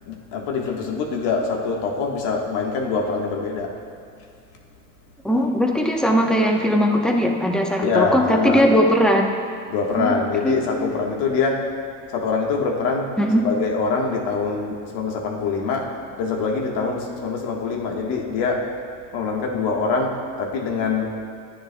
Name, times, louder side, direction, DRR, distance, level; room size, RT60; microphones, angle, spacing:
voice 1, 0.1-3.8 7.8-8.7 9.7-11.7 12.1-13.1 13.4-18.7 19.1-21.2, left 4 dB, 85° left, 0 dB, 1.5 m, -24 dB
voice 2, 5.2-9.3 10.0-10.1 10.4-10.9 13.2-13.4, equal, ahead, 1 dB, 0.9 m, -19 dB
13.0 x 10.0 x 2.3 m, 2.3 s
cardioid pair, 105°, 40 cm